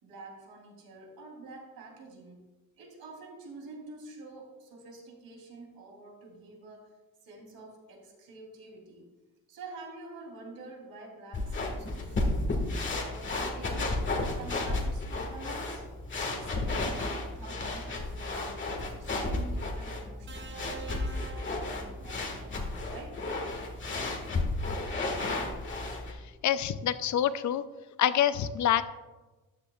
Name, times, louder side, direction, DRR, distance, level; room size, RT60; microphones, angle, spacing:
voice 1, 0.0-2.4 2.8-9.1 9.5-12.6 13.0-15.9 16.3-17.1 17.3-23.2, right 3 dB, 70° right, -1 dB, 3.3 m, -48 dB
sound 1, 11.3-26.1, left 2 dB, 30° left, 1.7 m, -33 dB
sound 2, 20.3-22.5 23.8-24.1, right 6 dB, 35° right, 0.7 m, -46 dB
voice 2, 26.4-27.6 28.0-28.8, left 10 dB, 55° left, 13 dB, 0.6 m, -26 dB
13.5 x 10.0 x 2.4 m, 1.2 s
cardioid pair, 155°, 36 cm